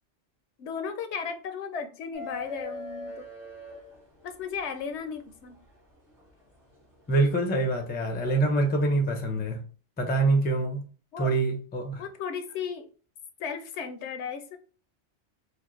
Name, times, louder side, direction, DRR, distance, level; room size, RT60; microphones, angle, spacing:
voice 1, 0.6-3.3 4.2-5.6 11.1-11.4 12.0-12.9 13.4-14.6, left 6 dB, 75° left, 0.8 m, -35 dB
sound 1, 2.1-4.5 6.2-6.3 8.1-8.3, left 1 dB, 60° right, 2.3 m, -40 dB
voice 2, 7.1-9.6 10.0-10.8 11.2-12.0, right 2 dB, 15° left, 0.4 m, -25 dB
4.8 x 2.0 x 3.0 m
omnidirectional pair, 1.2 m